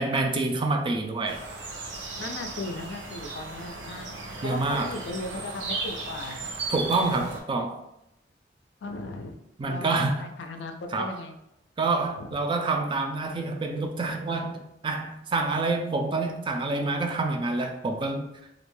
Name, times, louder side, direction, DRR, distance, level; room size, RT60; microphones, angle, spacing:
voice 1, 0.0-1.4 4.4-4.9 6.7-7.8 9.6-10.2 10.9-11.1 11.8-18.3, right 3 dB, 25° right, 4 dB, 0.3 m, -27 dB
sound 1, 1.2-7.4, right 3 dB, 80° right, 0.6 m, -36 dB
voice 2, 2.2-4.1 4.4-6.5 8.8-9.3 9.6-11.3 12.2-12.4, left 2 dB, 70° left, 5 dB, 0.4 m, -37 dB
2.4 x 2.1 x 3.0 m, 0.83 s
head